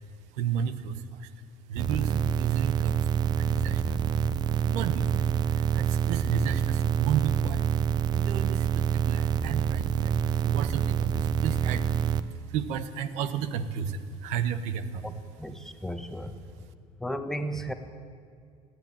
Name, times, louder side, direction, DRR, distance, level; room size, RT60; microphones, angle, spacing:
voice 1, 0.3-1.3 1.7-4.0 4.7-7.6 8.1-11.9 12.5-15.2, right 8 dB, 75° right, 12 dB, 1.3 m, -33 dB
sound 1, 1.8-12.2, right 8 dB, 35° right, 0.8 m, -26 dB
voice 2, 15.4-16.7 17.0-17.7, equal, 5° left, 7 dB, 1.3 m, -35 dB
30.0 x 10.5 x 9.1 m, 2.2 s
cardioid pair, 150°, 12 cm